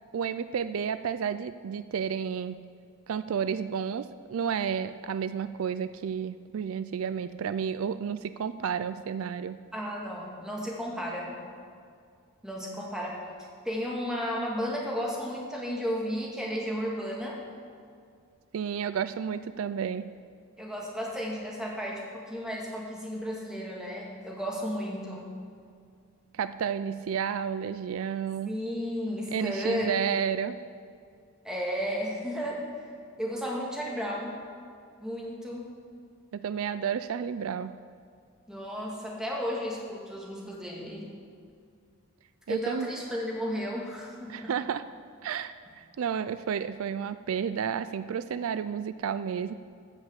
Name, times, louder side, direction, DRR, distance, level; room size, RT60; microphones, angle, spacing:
voice 1, 0.1-2.6 3.1-9.6 18.5-20.1 26.3-28.6 29.3-30.6 36.3-37.8 42.5-42.9 44.3-44.9 45.2-49.5, right 7 dB, 75° right, 13 dB, 0.4 m, -31 dB
voice 2, 9.7-11.4 12.4-13.2 13.6-17.4 20.6-25.3 28.4-30.2 31.4-32.9 33.2-34.4 35.0-35.7 38.5-41.1 42.5-44.6, equal, 5° right, -3 dB, 1.9 m, -33 dB
13.5 x 5.6 x 8.1 m, 2.3 s
head